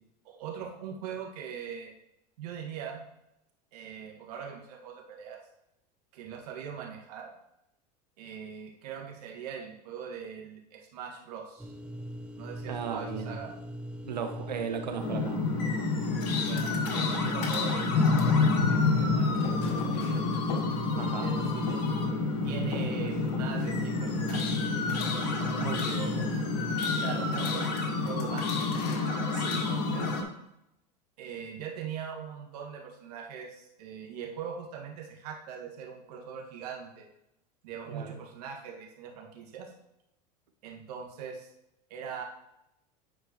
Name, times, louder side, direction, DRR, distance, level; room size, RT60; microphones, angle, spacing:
voice 1, 0.2-1.9 2.4-3.0 3.7-5.4 6.1-7.3 8.2-11.7 12.4-13.6 16.4-20.2 21.0-21.8 22.4-24.6 25.4-26.3 27.0-28.6 29.5-30.2 31.2-37.1 37.6-39.7 40.6-41.5 41.9-42.2, right 7 dB, 70° right, 0 dB, 1.8 m, -41 dB
sound 1, 11.6-26.8, equal, 5° right, 0.8 m, -41 dB
voice 2, 12.7-13.3 14.0-15.4 21.0-21.3 25.6-26.0 29.3-29.7 37.9-38.1, right 6 dB, 90° right, 5 dB, 1.0 m, -36 dB
sound 2, 15.0-30.2, left 3 dB, 65° left, 1.5 m, -28 dB
10.0 x 4.6 x 3.0 m, 0.83 s
hypercardioid pair, 90°, 21 cm